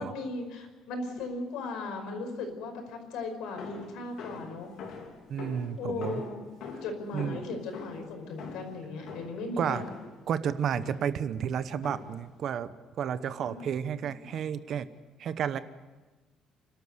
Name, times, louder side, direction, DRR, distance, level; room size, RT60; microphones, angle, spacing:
voice 1, 0.0-4.7 5.8-6.4 6.8-9.8 13.5-13.7 14.1-14.2, left 3 dB, 75° left, 5 dB, 5.3 m, -37 dB
sound 1, 3.6-10.2 10.7-11.2 11.8-12.3, left 4 dB, 60° left, 3.7 m, -44 dB
voice 2, 5.3-6.2 6.7-6.8 7.1-7.4 9.6-9.8 10.3-14.9 15.2-15.6, right 8 dB, 45° right, 13 dB, 0.9 m, -31 dB
29.0 x 12.5 x 8.1 m, 1.2 s
cardioid pair, 165°, 0 cm